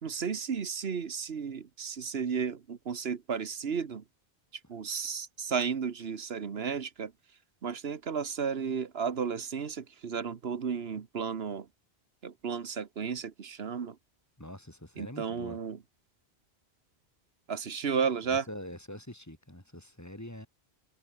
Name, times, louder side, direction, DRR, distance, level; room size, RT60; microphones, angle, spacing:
voice 1, 0.0-4.0 4.7-7.1 7.6-11.7 12.2-14.0 14.9-15.8 17.5-18.5, right 6 dB, 70° right, 1.4 m, -33 dB
voice 2, 14.4-15.6 18.5-20.5, left 1 dB, 15° left, 2.8 m, -44 dB
omnidirectional pair, 1.1 m